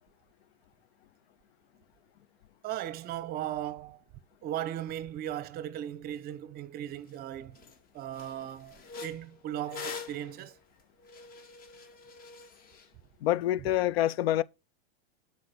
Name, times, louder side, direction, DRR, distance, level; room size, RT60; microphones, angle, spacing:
voice 1, 2.6-4.0 4.4-7.6 7.9-10.6, right 11 dB, 30° right, 0.9 m, -37 dB
sound 1, 7.1-7.2 7.6-7.8 8.1-12.9, left 5 dB, 30° left, 2.1 m, -45 dB
voice 2, 13.2-14.4, left 13 dB, 70° left, 0.7 m, -26 dB
9.7 x 5.0 x 6.1 m
supercardioid pair, 145°, 32 cm